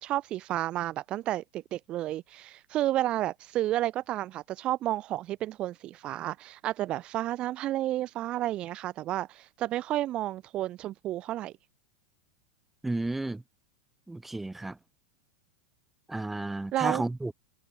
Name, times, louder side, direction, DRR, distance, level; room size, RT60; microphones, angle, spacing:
voice 1, 0.0-11.5 16.7-17.0, right 14 dB, 35° right, 3.8 m, -31 dB
voice 2, 12.8-13.4 14.1-14.8 16.1-17.3, right 2 dB, 5° right, 2.3 m, -32 dB
figure-of-eight pair, 90°, 3 cm